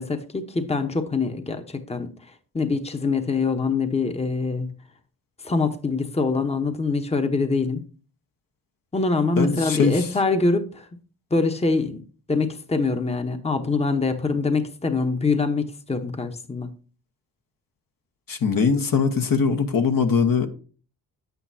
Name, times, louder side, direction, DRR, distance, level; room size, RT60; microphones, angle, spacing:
voice 1, 0.0-2.1 2.5-4.7 5.4-7.8 8.9-10.9 11.3-12.0 12.3-16.7, left 3 dB, 15° left, 1.0 m, -24 dB
voice 2, 9.4-10.1 18.3-20.5, left 5 dB, 55° left, 1.2 m, -21 dB
8.7 x 8.2 x 2.8 m
cardioid pair, 65°, 39 cm